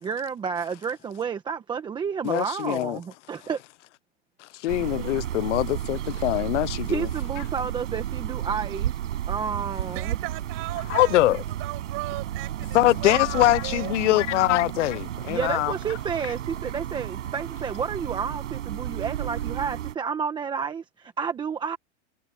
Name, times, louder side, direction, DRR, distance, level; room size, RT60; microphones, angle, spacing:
voice 1, 0.0-3.6 6.9-8.9 9.3-10.1 15.3-21.8, right 6 dB, 10° right, 1.1 m, -30 dB
voice 2, 2.2-3.0 4.4-7.1 10.9-11.4 12.7-15.7, left 16 dB, 75° left, 0.6 m, -23 dB
sound 1, 4.7-20.0, right 11 dB, 90° right, 5.3 m, -32 dB
voice 3, 9.9-13.9, right 23 dB, 35° right, 6.2 m, -36 dB
supercardioid pair, 160°, 36 cm